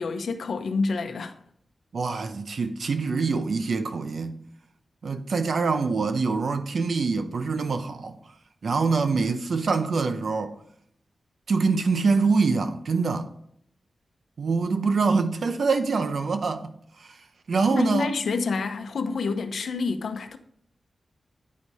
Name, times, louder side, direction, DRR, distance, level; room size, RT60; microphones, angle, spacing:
voice 1, 0.0-1.4 17.7-20.4, left 4 dB, 80° left, 0.7 m, -28 dB
voice 2, 1.9-4.4 5.0-8.2 8.6-10.6 11.5-13.3 14.4-17.2 17.5-18.1, right 4 dB, 70° right, 0.7 m, -25 dB
9.4 x 4.7 x 4.1 m
wide cardioid pair, 90°, 0 cm